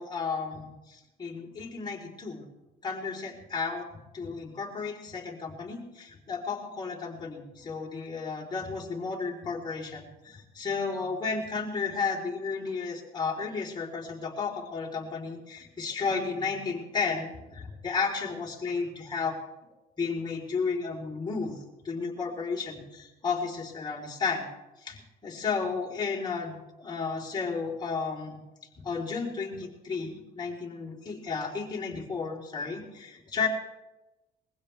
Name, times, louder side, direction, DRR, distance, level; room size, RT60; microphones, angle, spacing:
voice 1, 0.0-2.4 2.8-3.9 4.1-19.3 20.0-21.6 21.8-24.5 24.8-28.4 28.8-33.5, left 5 dB, 25° left, -2 dB, 3.9 m, -33 dB
21.5 x 16.0 x 3.4 m, 1.0 s
cardioid pair, 110°, 17 cm